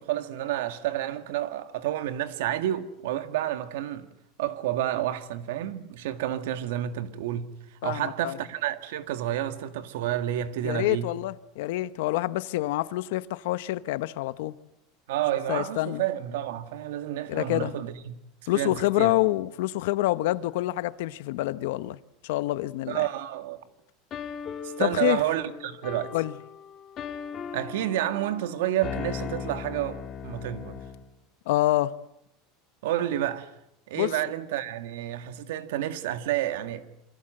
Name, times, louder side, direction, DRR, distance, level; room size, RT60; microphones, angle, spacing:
voice 1, 0.0-4.1 4.4-11.1 15.1-18.2 18.5-19.1 22.9-23.6 24.6-26.2 27.5-30.8 32.8-33.5 33.9-36.9, right 12 dB, 80° right, 2.0 m, -30 dB
voice 2, 7.8-8.4 10.6-14.5 15.5-16.0 17.3-17.8 18.5-22.0 22.2-23.0 24.8-25.2 26.1-26.3 31.5-32.0 33.9-34.1, left 17 dB, 65° left, 1.0 m, -27 dB
sound 1, 24.1-31.1, left 7 dB, 25° left, 1.7 m, -38 dB
28.0 x 24.5 x 7.8 m
supercardioid pair, 180°, 0 cm